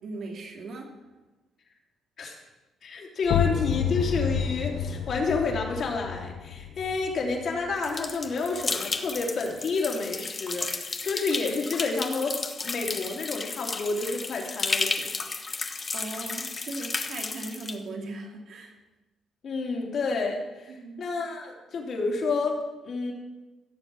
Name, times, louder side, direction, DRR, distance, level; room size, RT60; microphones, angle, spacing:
voice 1, 0.0-0.9 15.9-18.8 20.7-21.0, right 2 dB, 65° right, 1 dB, 2.7 m, -38 dB
voice 2, 2.8-12.4 12.6-15.1 19.4-23.1, left 4 dB, 60° left, 0 dB, 3.1 m, -29 dB
sound 1, 3.2-8.8, left 7 dB, 80° left, 1.0 m, -30 dB
sound 2, 7.8-17.8, left 4 dB, 35° left, 1.2 m, -33 dB
16.0 x 7.3 x 6.3 m, 1.1 s
cardioid pair, 90°, 0 cm